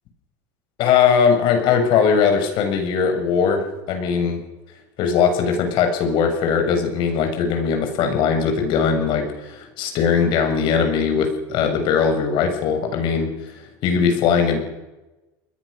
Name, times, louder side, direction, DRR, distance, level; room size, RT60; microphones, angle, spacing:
voice 1, 0.8-4.4 5.0-14.6, left 6 dB, 55° left, 5 dB, 7.1 m, -20 dB
30.0 x 21.0 x 6.9 m, 1.0 s
supercardioid pair, 125°, 10 cm